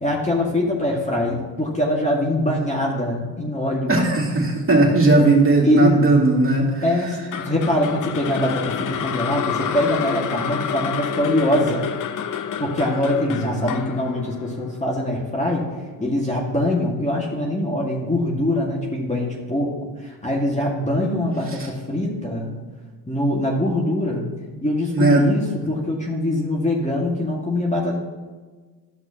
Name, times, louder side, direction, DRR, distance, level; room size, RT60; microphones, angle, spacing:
voice 1, 0.0-4.0 5.6-6.0 6.8-11.9 12.6-15.7 16.0-19.7 20.0-22.5 23.1-24.3 24.6-28.0, left 1 dB, 15° left, -3 dB, 2.0 m, -23 dB
voice 2, 3.9-6.8 13.2-13.7 16.0-16.1 24.9-25.3, right 2 dB, 25° right, -3 dB, 2.7 m, -17 dB
sound 1, 7.3-15.5, left 8 dB, 40° left, 0.6 m, -29 dB
13.0 x 5.9 x 3.0 m, 1.4 s
hypercardioid pair, 60°, 49 cm